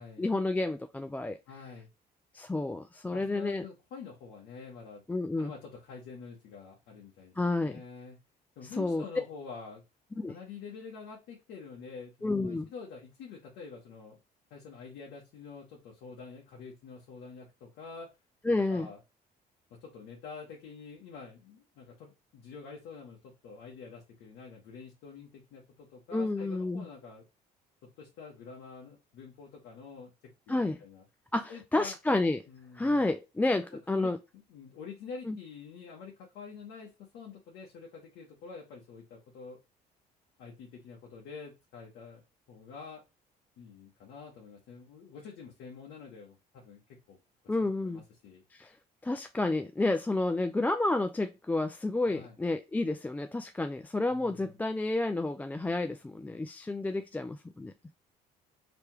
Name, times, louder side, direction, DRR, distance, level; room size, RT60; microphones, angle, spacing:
voice 1, 0.2-1.4 2.3-3.6 5.1-5.5 7.4-7.8 8.8-9.0 10.2-10.3 12.2-12.7 18.4-18.9 26.1-26.9 30.5-30.8 31.3-32.4 32.7-34.2 35.3-35.4 47.5-48.0 48.5-48.8 49.0-57.7, left 2 dB, 10° left, 0.3 m, -30 dB
voice 2, 1.5-1.9 3.1-5.0 5.4-8.2 8.6-9.8 10.3-14.2 14.5-18.1 18.5-19.0 19.7-27.3 27.8-31.0 31.5-31.9 32.5-33.0 33.5-33.6 33.9-39.6 40.4-42.2 42.5-43.0 43.6-47.2 47.8-48.4 52.0-52.4 54.1-54.7, left 5 dB, 85° left, 1.3 m, -47 dB
3.4 x 2.8 x 4.6 m
cardioid pair, 110°, 17 cm